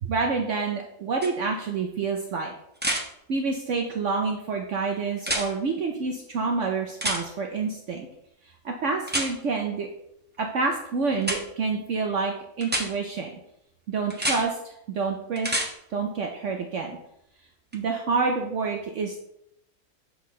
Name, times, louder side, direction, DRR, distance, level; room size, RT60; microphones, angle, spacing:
voice 1, 0.0-2.5 3.3-8.1 8.4-9.9 10.4-13.3 13.9-15.5 15.9-17.0 17.7-19.2, right 4 dB, 60° right, 2 dB, 0.9 m, -28 dB
sound 1, 1.2-1.3 2.8-3.0 5.2-5.5 7.0-7.2 9.1-9.3 11.2-11.4 12.6-12.9 14.1-14.4 15.4-15.7 17.7-17.8, right 1 dB, 10° right, 0.5 m, -27 dB
6.3 x 5.8 x 3.1 m, 0.76 s
omnidirectional pair, 1.7 m